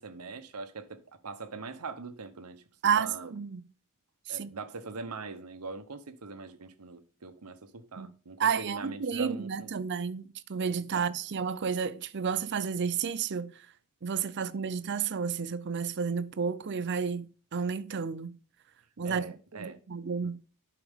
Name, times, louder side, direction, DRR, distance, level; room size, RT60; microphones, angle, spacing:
voice 1, 0.0-2.6 3.0-3.4 4.3-9.7 10.9-11.0 19.0-19.8 20.2-20.3, right 4 dB, 85° right, 0.9 m, -42 dB
voice 2, 2.8-3.6 4.3-4.5 8.0-8.1 8.4-13.5 14.0-18.4 19.0-19.2 19.5-20.4, right 6 dB, 50° right, 0.5 m, -31 dB
11.5 x 4.9 x 3.6 m
head